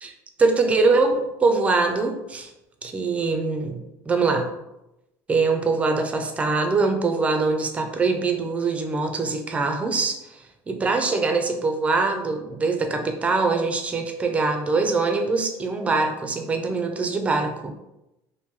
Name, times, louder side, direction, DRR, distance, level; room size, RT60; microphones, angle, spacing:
voice 1, 0.4-2.5 2.8-4.5 5.3-17.7, right 3 dB, 20° right, 4 dB, 0.4 m, -23 dB
3.0 x 2.6 x 3.6 m, 0.92 s
cardioid pair, 145°, 7 cm